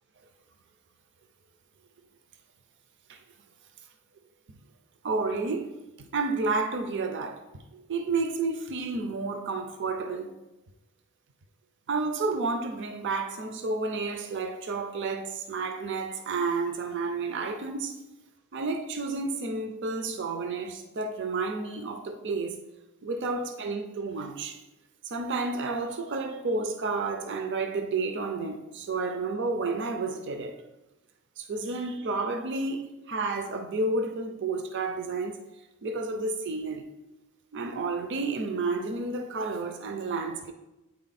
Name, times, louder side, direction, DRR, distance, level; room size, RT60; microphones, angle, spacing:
voice 1, 5.0-5.7 6.1-7.4 7.7-10.3 11.9-17.9 18.5-22.6 23.0-24.6 25.0-30.6 31.4-35.4 35.8-36.8 37.5-40.5, right 3 dB, 55° right, 0.5 m, -31 dB
8.6 x 4.0 x 4.1 m
head